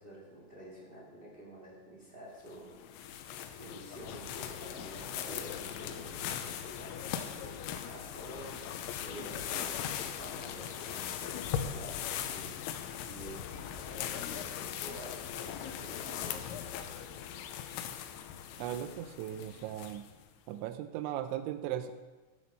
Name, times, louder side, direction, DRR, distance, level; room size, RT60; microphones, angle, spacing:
voice 1, 0.0-8.5 8.9-12.6 13.0-16.4, right 1 dB, 50° right, -3 dB, 0.6 m, -49 dB
sound 1, 2.5-20.2, left 9 dB, 90° left, 3.1 m, -39 dB
voice 2, 18.6-20.1 20.5-21.9, right 11 dB, 85° right, 9 dB, 2.8 m, -37 dB
15.0 x 8.1 x 5.5 m, 1.3 s
omnidirectional pair, 5.4 m